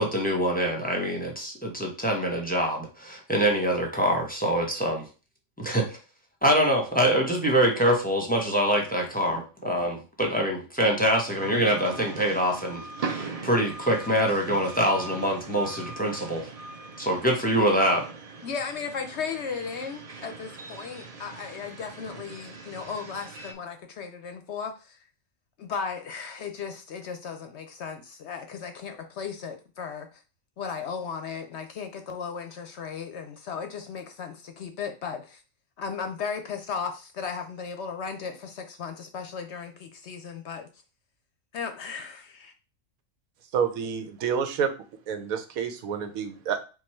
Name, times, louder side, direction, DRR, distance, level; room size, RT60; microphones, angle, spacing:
voice 1, 0.0-5.0 5.6-6.0 6.4-16.5 17.0-18.0, equal, 10° left, 0 dB, 0.9 m, -25 dB
sound 1, 11.3-23.5, right 4 dB, 50° right, 0.4 m, -40 dB
voice 2, 18.4-25.0 25.6-30.2 30.6-35.4 35.8-40.7 41.5-42.5, left 6 dB, 65° left, 6 dB, 0.8 m, -36 dB
voice 3, 43.5-44.7 45.1-46.7, right 7 dB, 85° right, 8 dB, 1.2 m, -28 dB
4.7 x 2.3 x 4.3 m, 0.33 s
omnidirectional pair, 1.4 m